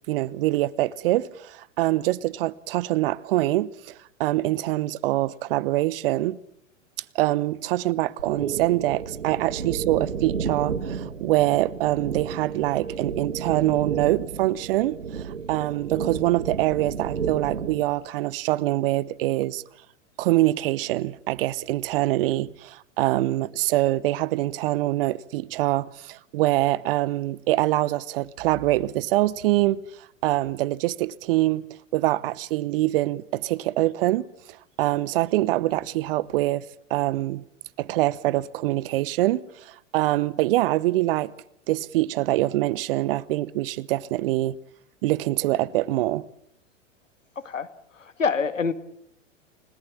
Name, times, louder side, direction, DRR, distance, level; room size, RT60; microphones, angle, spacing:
voice 1, 0.1-6.4 7.1-19.6 20.2-29.8 30.2-31.6 31.9-34.2 34.8-36.6 36.9-37.4 37.8-41.3 41.7-44.6 45.0-46.2, right 16 dB, 45° right, 1.0 m, -24 dB
sound 1, 8.2-17.9, right 6 dB, 80° right, 2.0 m, -32 dB
voice 2, 47.4-47.7 47.9-48.7, left 5 dB, 80° left, 1.9 m, -26 dB
30.0 x 18.0 x 7.4 m
figure-of-eight pair, 95°, 38 cm